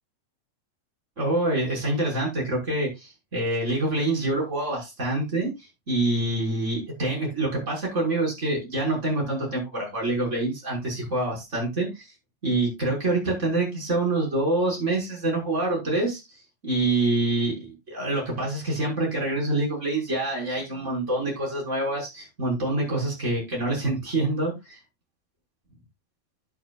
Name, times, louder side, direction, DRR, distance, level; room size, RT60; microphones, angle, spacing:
voice 1, 1.2-5.5 5.9-12.1 12.4-16.2 16.6-24.8, right 2 dB, 15° right, -2 dB, 5.9 m, -26 dB
10.5 x 10.5 x 2.5 m, 0.23 s
omnidirectional pair, 5.1 m